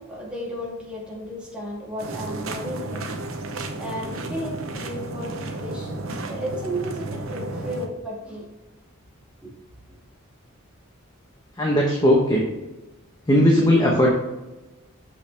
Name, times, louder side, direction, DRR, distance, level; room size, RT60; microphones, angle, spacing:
voice 1, 0.0-3.1 3.8-8.5 9.4-9.5, equal, 5° right, -5 dB, 2.0 m, -34 dB
sound 1, 2.0-7.9, right 2 dB, 65° right, 0.8 m, -32 dB
voice 2, 11.6-12.5 13.3-14.2, equal, 15° left, -2 dB, 0.9 m, -18 dB
6.6 x 5.8 x 3.4 m, 1.0 s
head